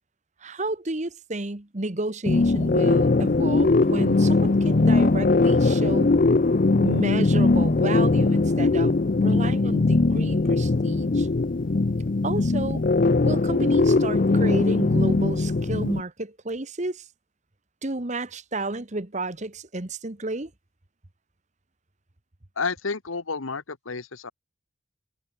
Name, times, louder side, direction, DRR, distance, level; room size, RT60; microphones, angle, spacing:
voice 1, 0.4-6.1 6.8-11.3 12.2-12.8 13.2-17.0 17.8-20.5, right 2 dB, 35° right, 1.3 m, -31 dB
sound 1, 2.2-16.0, left 3 dB, 40° left, 0.5 m, -20 dB
voice 2, 22.6-24.3, left 4 dB, 85° left, 1.2 m, -30 dB
head